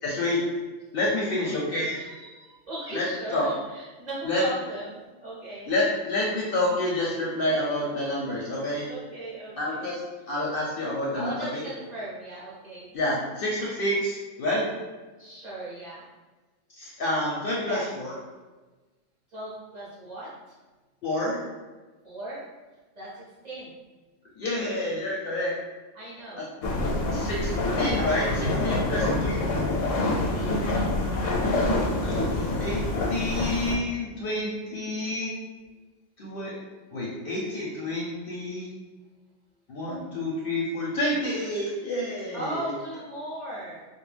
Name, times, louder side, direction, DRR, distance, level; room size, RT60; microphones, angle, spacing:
voice 1, 0.0-0.4 0.9-2.0 2.9-3.0 3.3-3.5 4.2-4.4 5.7-8.9 9.6-10.0 10.3-11.6 12.9-14.7 16.8-18.2 21.0-21.4 24.4-25.5 26.4-26.5 27.1-29.4 32.0-32.8 33.1-35.3 36.2-36.5 36.9-38.7 39.7-42.7, left 1 dB, 60° left, -4 dB, 0.6 m, -28 dB
voice 2, 1.9-5.7 8.9-9.9 11.1-12.9 15.2-16.1 17.6-17.8 19.3-20.5 22.0-22.5 22.9-23.8 25.9-26.5 28.8-29.1 30.3-31.0 42.3-43.8, right 1 dB, 45° right, -8 dB, 0.6 m, -38 dB
sound 1, 26.6-33.8, left 2 dB, 85° left, 0.9 m, -26 dB
2.2 x 2.1 x 3.2 m, 1.2 s
omnidirectional pair, 1.3 m